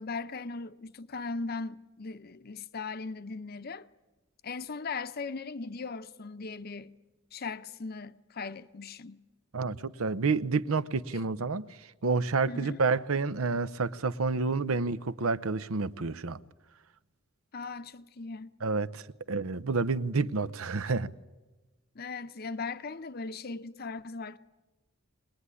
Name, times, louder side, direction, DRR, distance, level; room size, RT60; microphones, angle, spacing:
voice 1, 0.0-3.9 4.4-6.9 7.3-9.2 12.5-12.8 17.5-18.5 20.9-21.0 21.9-24.4, left 4 dB, 45° left, 0.8 m, -38 dB
voice 2, 9.5-11.7 12.0-16.4 18.6-19.0 19.3-21.1, right 4 dB, 85° right, 0.8 m, -29 dB
23.0 x 19.5 x 9.8 m
head